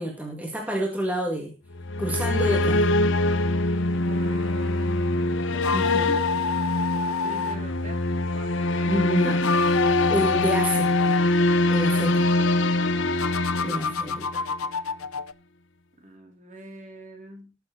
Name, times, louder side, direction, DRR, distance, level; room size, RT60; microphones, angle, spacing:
voice 1, 0.0-1.6 2.0-2.9 5.7-6.2 8.9-9.4 10.1-11.0 11.7-12.3 13.6-14.4, right 1 dB, 5° right, 1 dB, 1.9 m, -28 dB
sound 1, 1.7-14.6, left 2 dB, 60° left, 0.9 m, -24 dB
voice 2, 4.1-5.0 7.0-8.0 8.3-9.5 10.3-10.5 11.8-12.7 13.4-13.7 14.1-14.2 16.0-17.6, right 1 dB, 35° right, 3 dB, 3.2 m, -44 dB
sound 2, 5.5-7.6 9.3-11.2 13.2-15.3, left 6 dB, 85° left, 0.6 m, -28 dB
19.5 x 6.9 x 3.8 m, 0.28 s
head